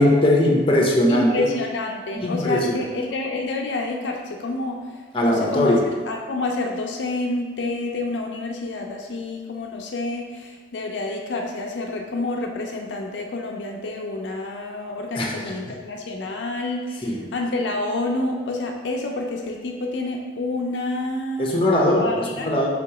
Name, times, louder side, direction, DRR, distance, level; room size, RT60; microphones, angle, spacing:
voice 1, 0.0-1.3 2.1-2.8 5.1-5.8 15.1-15.4 17.0-17.2 21.4-22.7, left 1 dB, 30° left, -1 dB, 0.7 m, -19 dB
voice 2, 1.1-21.5 22.0-22.7, left 2 dB, 80° left, 1 dB, 0.5 m, -28 dB
3.5 x 2.9 x 4.7 m, 1.4 s
head